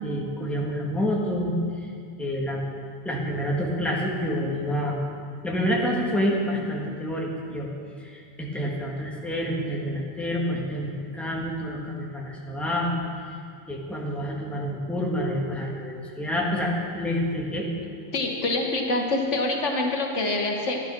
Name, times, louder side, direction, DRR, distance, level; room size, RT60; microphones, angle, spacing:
voice 1, 0.0-1.9 2.2-2.6 3.0-5.0 5.4-7.7 8.0-13.0 13.7-17.7, equal, ahead, -3 dB, 1.6 m, -28 dB
voice 2, 18.1-20.8, left 2 dB, 85° left, 1 dB, 1.7 m, -25 dB
11.5 x 11.0 x 6.0 m, 2.2 s
omnidirectional pair, 1.2 m